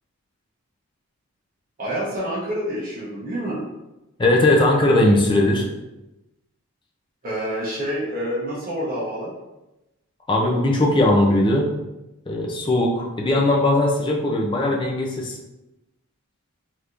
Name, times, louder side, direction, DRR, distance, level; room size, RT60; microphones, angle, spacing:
voice 1, 1.8-3.6 7.2-9.3, equal, 40° right, -7 dB, 1.2 m, -27 dB
voice 2, 4.2-5.7 10.3-11.7 12.3-15.4, left 1 dB, 20° left, -1 dB, 0.4 m, -19 dB
3.4 x 2.9 x 2.5 m, 0.97 s
head